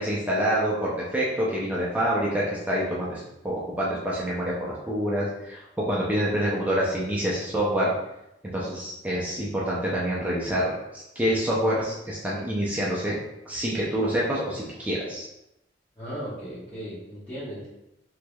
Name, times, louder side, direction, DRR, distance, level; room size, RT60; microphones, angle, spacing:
voice 1, 0.0-5.6 5.9-7.9 8.4-13.2 13.5-15.3, equal, 10° right, -6 dB, 0.4 m, -27 dB
voice 2, 16.0-17.7, equal, 10° left, -15 dB, 1.1 m, -36 dB
3.3 x 3.0 x 2.2 m, 0.87 s
head